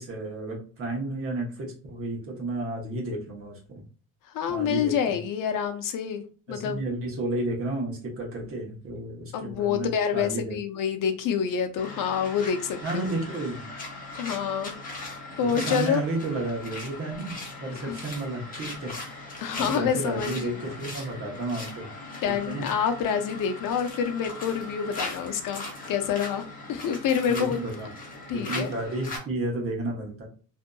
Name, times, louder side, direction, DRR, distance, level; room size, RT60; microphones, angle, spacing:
voice 1, 0.0-3.8 4.5-5.2 6.5-10.6 12.8-13.6 15.4-18.9 19.6-21.9 22.3-22.7 27.3-27.9 28.3-30.3, right 2 dB, 40° right, 0.9 m, -32 dB
voice 2, 4.3-6.8 9.3-13.1 14.2-14.8 15.4-16.0 17.7-18.0 19.4-20.6 22.1-27.6 28.3-28.7, left 7 dB, 65° left, 0.6 m, -27 dB
sound 1, 11.8-29.2, left 2 dB, 25° left, 0.7 m, -39 dB
2.7 x 2.4 x 2.2 m
cardioid pair, 175°, 35 cm